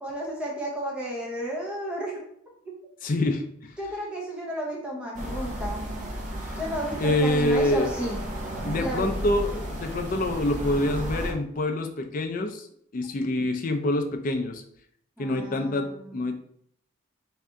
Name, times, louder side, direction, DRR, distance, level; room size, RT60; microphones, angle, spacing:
voice 1, 0.0-2.3 3.8-5.9 6.6-8.2 8.7-9.4 15.2-16.2, equal, 5° right, -3 dB, 0.8 m, -32 dB
voice 2, 3.0-3.7 7.0-7.9 8.6-12.7 12.9-14.6 15.2-16.4, left 1 dB, 40° left, 6 dB, 0.4 m, -26 dB
sound 1, 5.1-11.3, equal, 35° right, 0.6 m, -33 dB
3.3 x 2.6 x 3.5 m, 0.68 s
head